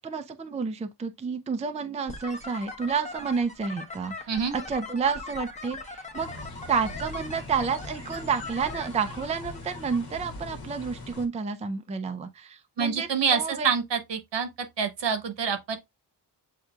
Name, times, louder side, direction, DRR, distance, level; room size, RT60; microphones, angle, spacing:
voice 1, 0.0-6.3 6.7-13.7, right 5 dB, 15° right, 0.4 m, -30 dB
sound 1, 2.1-10.0, left 2 dB, 15° left, 0.8 m, -41 dB
sound 2, 6.1-11.3, left 2 dB, 60° left, 1.1 m, -41 dB
voice 2, 12.8-14.5 14.8-15.8, right 6 dB, 80° right, 1.0 m, -26 dB
7.9 x 2.8 x 2.3 m
wide cardioid pair, 155°, 42 cm